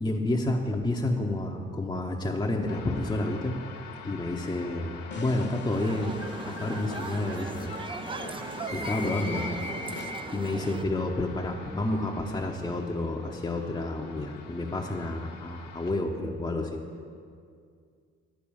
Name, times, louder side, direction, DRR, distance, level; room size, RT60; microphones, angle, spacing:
voice 1, 0.0-3.6 4.0-7.7 8.7-9.6 10.3-17.1, left 2 dB, 15° left, -1 dB, 0.8 m, -30 dB
sound 1, 2.7-15.9, left 6 dB, 75° left, 1.0 m, -47 dB
sound 2, 5.1-10.5, left 2 dB, 35° left, 1.1 m, -40 dB
sound 3, 5.7-10.8, right 4 dB, 15° right, 0.4 m, -38 dB
10.5 x 4.3 x 7.1 m, 2.2 s
hypercardioid pair, 55°, 31 cm